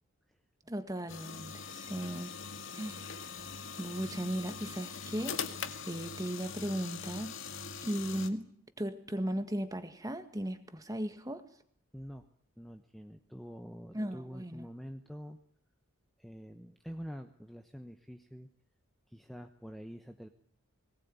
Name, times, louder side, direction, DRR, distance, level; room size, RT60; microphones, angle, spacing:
voice 1, 0.7-2.3 2.7-3.5 3.8-5.4 5.9-11.5 13.9-14.7, right 1 dB, 15° right, 1.8 m, -37 dB
sound 1, 1.1-8.3, left 6 dB, 65° left, 2.0 m, -42 dB
voice 2, 11.9-12.3 12.6-15.4 16.2-18.5 19.1-20.3, equal, ahead, 1.0 m, -46 dB
21.0 x 19.0 x 9.6 m
head